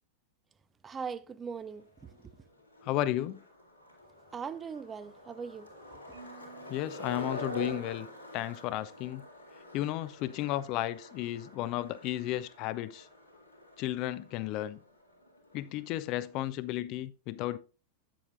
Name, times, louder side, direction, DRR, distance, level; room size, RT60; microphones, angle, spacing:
voice 1, 0.8-2.1 4.3-5.7, right 6 dB, 20° right, 0.4 m, -40 dB
Skateboard, 1.5-16.7, equal, 90° left, 2.4 m, -47 dB
voice 2, 2.8-3.4 6.7-8.1 8.3-9.3 9.7-13.1 13.8-14.8 15.5-17.6, left 14 dB, 40° left, 0.4 m, -33 dB
Marimba xylophone, 6.1-8.3, right 5 dB, 70° right, 1.4 m, -56 dB
8.6 x 7.5 x 2.5 m
figure-of-eight pair, 90°, 0 cm